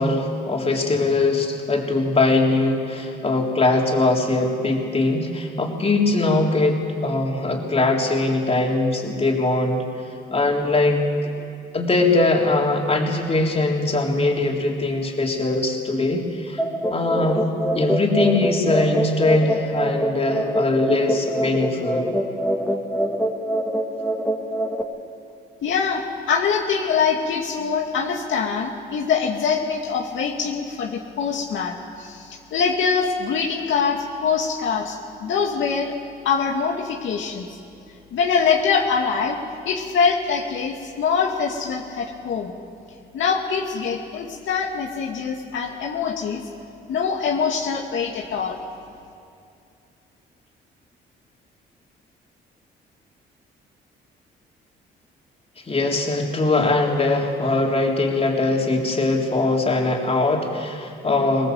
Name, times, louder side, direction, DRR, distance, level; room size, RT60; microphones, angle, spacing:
voice 1, 0.0-9.8 10.3-11.3 11.7-16.6 16.9-17.4 17.7-22.1 55.7-61.5, left 2 dB, 30° left, 0 dB, 3.9 m, -21 dB
sound 1, 16.6-24.8, equal, 5° left, 2.5 m, -24 dB
voice 2, 25.6-35.9 36.2-37.5 38.1-39.4 39.7-42.5 43.1-46.4 46.9-48.6, left 6 dB, 75° left, 1 dB, 2.2 m, -24 dB
23.5 x 19.5 x 8.0 m, 2.5 s
cardioid pair, 90°, 20 cm